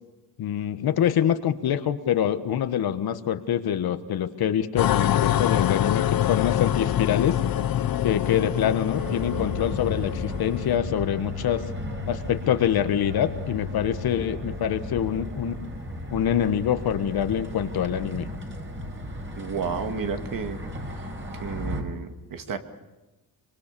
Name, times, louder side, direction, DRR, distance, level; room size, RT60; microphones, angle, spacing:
voice 1, 0.4-7.4 8.0-11.6 12.0-15.6 16.1-18.3, left 9 dB, 90° left, 11 dB, 1.5 m, -25 dB
sound 1, 4.8-10.8, left 11 dB, 70° left, 0.9 m, -25 dB
sound 2, 8.9-21.8, left 1 dB, 35° right, 4.6 m, -35 dB
voice 2, 19.4-20.6 21.0-21.1 21.4-22.6, right 6 dB, 65° right, 7 dB, 2.3 m, -32 dB
25.5 x 24.0 x 6.9 m, 1.1 s
cardioid pair, 115°, 36 cm